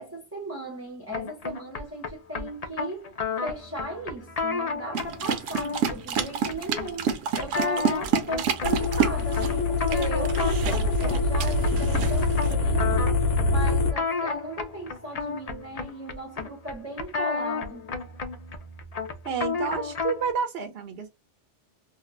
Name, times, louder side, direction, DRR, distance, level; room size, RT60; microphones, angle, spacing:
voice 1, 0.0-3.1 3.4-13.1 13.5-17.9, right 1 dB, 15° right, 0.7 m, -37 dB
sound 1, 1.1-20.3, left 5 dB, 45° left, 0.5 m, -33 dB
sound 2, 4.9-12.6, right 7 dB, 85° right, 1.0 m, -29 dB
sound 3, 8.6-13.9, left 2 dB, 85° left, 1.1 m, -24 dB
voice 2, 19.3-21.1, right 6 dB, 60° right, 0.8 m, -29 dB
2.6 x 2.3 x 3.1 m
omnidirectional pair, 1.2 m